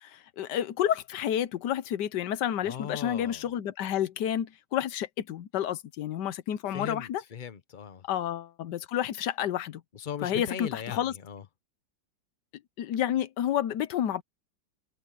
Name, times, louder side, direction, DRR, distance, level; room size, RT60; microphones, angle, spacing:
voice 1, 0.0-7.2 8.1-9.8 10.2-11.1 12.8-14.2, left 10 dB, 70° left, 1.4 m, -30 dB
voice 2, 2.6-3.5 6.7-8.1 9.9-11.4, left 7 dB, 45° left, 0.6 m, -39 dB
omnidirectional pair, 2.0 m